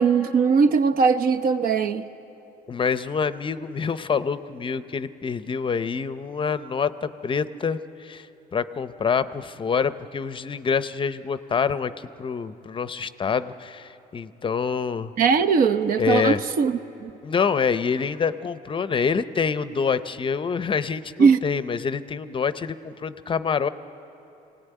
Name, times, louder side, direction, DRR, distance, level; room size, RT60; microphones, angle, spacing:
voice 1, 0.0-2.0 15.2-17.1 21.2-21.4, right 5 dB, 60° right, 0.9 m, -20 dB
voice 2, 2.7-11.9 12.2-15.1 16.0-16.4 17.2-23.7, left 6 dB, 30° left, 0.6 m, -26 dB
23.5 x 18.0 x 9.2 m
cardioid pair, 110°, 17 cm